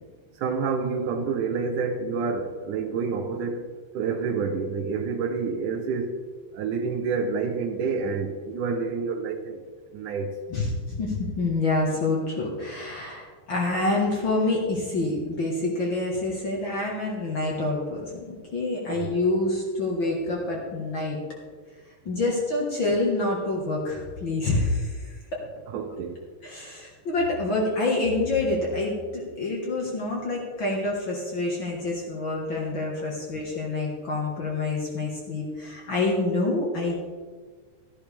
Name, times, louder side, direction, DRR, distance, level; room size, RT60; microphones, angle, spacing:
voice 1, 0.4-6.2 6.5-9.6 9.9-10.4 18.9-19.1 25.7-26.3, right 5 dB, 75° right, 6 dB, 2.1 m, -28 dB
voice 2, 10.5-21.2 22.1-25.4 26.4-37.0, left 2 dB, 45° left, -2 dB, 1.9 m, -27 dB
13.5 x 11.5 x 3.5 m, 1.5 s
omnidirectional pair, 3.9 m